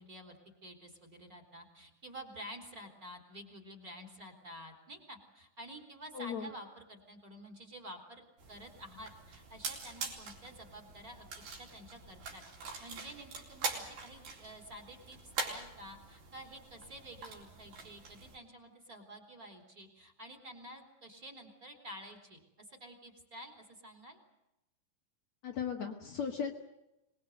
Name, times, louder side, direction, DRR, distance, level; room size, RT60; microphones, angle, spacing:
voice 1, 0.0-24.2, equal, 25° right, 6 dB, 3.6 m, -50 dB
voice 2, 6.1-6.5 25.4-26.5, left 7 dB, 55° left, 1 dB, 2.6 m, -36 dB
sound 1, 8.4-18.4, right 4 dB, 70° right, 5.7 m, -44 dB
25.5 x 21.0 x 7.9 m, 0.92 s
omnidirectional pair, 4.3 m